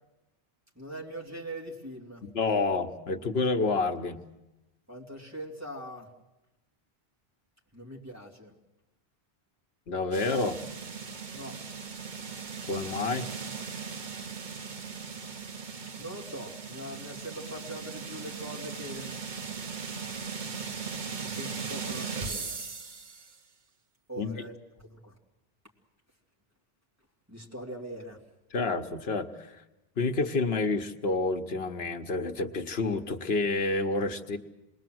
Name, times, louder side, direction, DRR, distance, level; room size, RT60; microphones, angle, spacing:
voice 1, 0.7-2.3 4.9-6.1 7.7-8.6 11.3-11.6 15.9-19.2 21.2-22.6 24.1-25.2 27.3-28.2, right 1 dB, 15° right, -2 dB, 3.0 m, -42 dB
voice 2, 2.3-4.2 9.9-10.6 12.7-13.3 24.2-24.4 28.5-29.6 30.0-34.4, left 3 dB, 75° left, 6 dB, 1.3 m, -29 dB
sound 1, 10.1-23.3, right 5 dB, 50° right, 1.2 m, -38 dB
27.5 x 21.0 x 7.7 m, 0.99 s
omnidirectional pair, 1.1 m